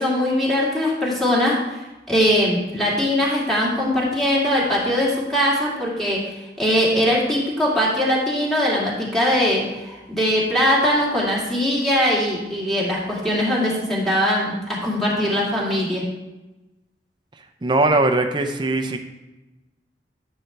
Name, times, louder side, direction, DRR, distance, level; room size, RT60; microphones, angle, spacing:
voice 1, 0.0-1.8 2.1-6.2 6.6-16.0, equal, ahead, -6 dB, 2.3 m, -21 dB
voice 2, 17.6-19.0, right 2 dB, 25° right, 5 dB, 0.6 m, -20 dB
11.5 x 6.8 x 3.3 m, 1.0 s
head